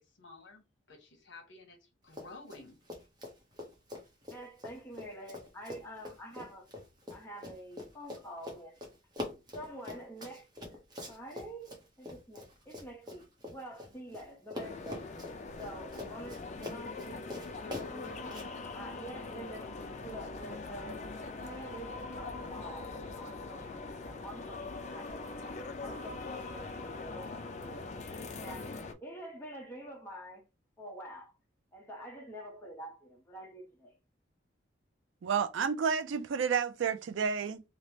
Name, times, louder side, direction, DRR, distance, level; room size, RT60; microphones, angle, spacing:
voice 1, 0.2-0.6 0.9-2.8, left 3 dB, 70° left, 1.0 m, -52 dB
Run, 2.1-2.6 2.9-14.2 14.5-18.5, left 1 dB, 20° right, 0.7 m, -44 dB
voice 2, 4.3-6.6 7.1-8.8 9.5-10.5 11.1-15.1 15.5-18.3 18.7-19.7 20.0-21.1 21.4-25.4 25.8-30.4 30.8-31.4 31.7-34.0, right 1 dB, 10° left, 0.8 m, -47 dB
sound 1, 14.6-28.9, left 3 dB, 35° left, 0.4 m, -42 dB
voice 3, 35.2-37.6, right 6 dB, 75° right, 0.4 m, -30 dB
3.1 x 2.0 x 2.7 m
head